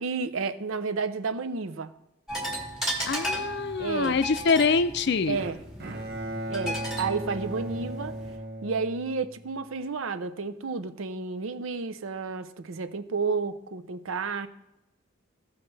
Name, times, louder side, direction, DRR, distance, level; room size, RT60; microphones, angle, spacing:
voice 1, 0.0-1.9 3.8-4.2 5.3-5.6 6.5-8.1 8.6-14.5, right 4 dB, 85° right, 12 dB, 0.6 m, -31 dB
sound 1, 2.3-8.4, equal, ahead, 1.7 m, -35 dB
voice 2, 3.1-5.4, left 4 dB, 55° left, 13 dB, 0.5 m, -25 dB
Bowed string instrument, 5.3-9.6, right 1 dB, 50° right, 1.0 m, -36 dB
15.5 x 5.6 x 3.3 m, 0.91 s
head